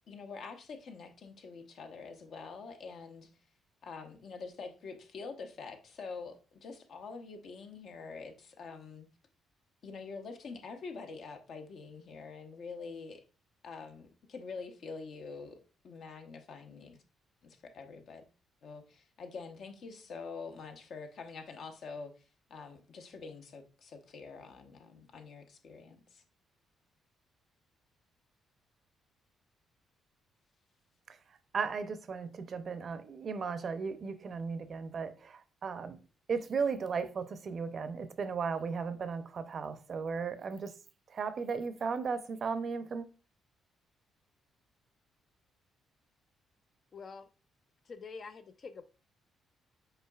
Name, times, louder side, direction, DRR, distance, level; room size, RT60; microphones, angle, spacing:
voice 1, 0.1-3.3 3.8-9.1 9.8-13.2 13.6-15.6 15.8-17.0 17.4-18.3 18.6-26.2, left 4 dB, 65° left, 0.8 m, -46 dB
voice 2, 31.1-36.0 36.3-40.8 41.1-43.1, right 5 dB, 50° right, 0.5 m, -36 dB
voice 3, 46.9-47.3 47.9-48.8, left 4 dB, 45° left, 0.3 m, -46 dB
5.6 x 3.9 x 2.3 m
cardioid pair, 90°, 0 cm